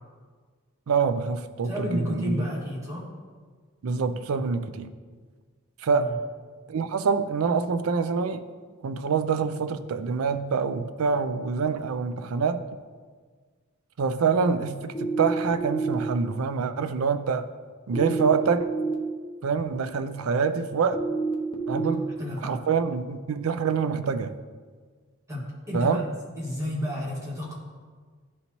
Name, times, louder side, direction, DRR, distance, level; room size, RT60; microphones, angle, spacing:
voice 1, 0.9-2.5 3.8-4.9 5.8-6.2 6.7-8.5 8.8-12.6 14.0-17.5 17.9-18.7 19.4-21.1 21.7-22.1 22.4-24.4 25.7-26.0, right 5 dB, 75° right, 0.4 m, -26 dB
voice 2, 1.6-3.1 5.9-6.1 21.7-22.6 25.3-26.1 26.4-27.5, left 1 dB, 15° right, 1.4 m, -32 dB
sound 1, 14.9-15.9 17.9-18.9 20.9-21.9, right 3 dB, 25° left, 0.7 m, -28 dB
12.0 x 4.1 x 3.0 m
head